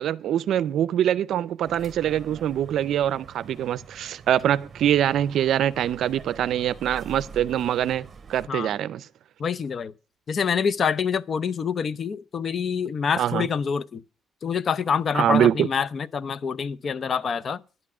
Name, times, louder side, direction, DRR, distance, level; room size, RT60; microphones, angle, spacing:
voice 1, 0.0-9.1 13.2-13.5 15.1-15.7, right 10 dB, 75° right, 0.5 m, -24 dB
sound 1, 1.6-8.5, right 5 dB, 35° right, 1.1 m, -45 dB
voice 2, 9.4-9.9 10.3-14.0 14.4-17.6, left 6 dB, 50° left, 0.6 m, -26 dB
10.5 x 8.6 x 6.0 m
cardioid pair, 90°, 0 cm